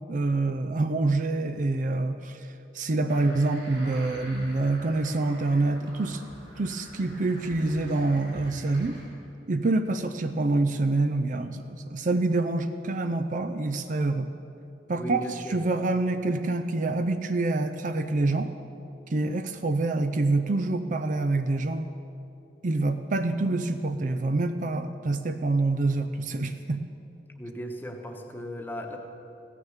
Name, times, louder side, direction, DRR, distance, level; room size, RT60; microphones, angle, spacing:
voice 1, 0.1-6.2 6.6-9.0 9.5-14.3 14.9-18.5 19.1-21.9 22.6-26.8, right 2 dB, 45° right, 8 dB, 0.5 m, -26 dB
sound 1, 3.1-9.1, equal, 75° right, 4.4 m, -46 dB
voice 2, 15.0-15.6 27.4-29.0, equal, 10° left, 3 dB, 1.1 m, -36 dB
16.0 x 9.8 x 7.2 m, 2.8 s
head